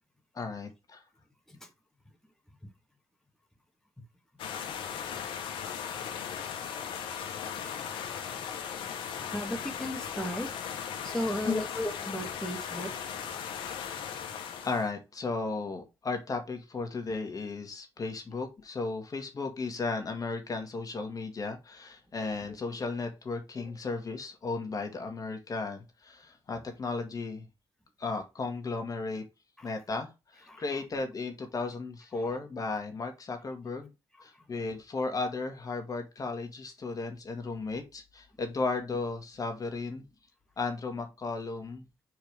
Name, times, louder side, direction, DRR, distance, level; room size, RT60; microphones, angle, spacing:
voice 1, 0.3-1.0 11.4-11.6 14.6-27.4 28.0-29.2 29.6-33.9 34.2-40.0 40.6-41.8, left 3 dB, 45° left, 2.0 m, -35 dB
sound 1, 4.4-14.9, left 8 dB, 85° left, 1.3 m, -37 dB
voice 2, 9.3-10.5 11.0-12.9 22.5-22.6 29.6-29.7 30.5-30.6, equal, 5° left, 1.9 m, -35 dB
4.8 x 4.6 x 5.1 m
supercardioid pair, 60°, 8 cm